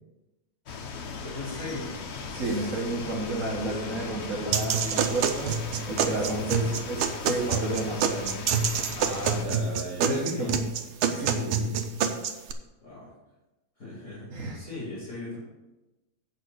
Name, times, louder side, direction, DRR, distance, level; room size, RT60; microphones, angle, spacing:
sound 1, 0.7-9.4, left 5 dB, 60° left, 0.7 m, -38 dB
voice 1, 1.2-1.9 3.6-4.3 6.4-6.8 9.0-10.6 11.1-11.6 12.8-13.1 13.8-15.4, left 2 dB, 45° left, -9 dB, 3.6 m, -38 dB
voice 2, 2.3-5.5 5.9-8.4 10.0-10.6 11.0-11.7 14.3-14.6, right 2 dB, 40° right, -4 dB, 1.7 m, -31 dB
sound 2, 4.5-12.5, right 6 dB, 85° right, 1.6 m, -27 dB
8.4 x 5.5 x 6.3 m, 1.1 s
omnidirectional pair, 2.2 m